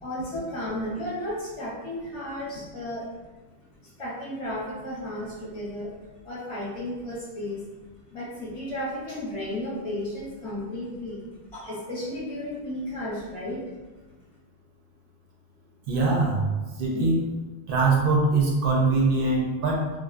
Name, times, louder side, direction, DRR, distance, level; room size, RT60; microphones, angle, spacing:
voice 1, 0.0-3.1 3.8-5.9 6.2-7.7 8.1-13.6, left 1 dB, 35° left, -7 dB, 0.6 m, -33 dB
voice 2, 15.9-16.5 16.8-17.2 17.7-19.9, right 3 dB, 60° right, -2 dB, 0.6 m, -22 dB
2.5 x 2.1 x 2.4 m, 1.2 s
omnidirectional pair, 1.2 m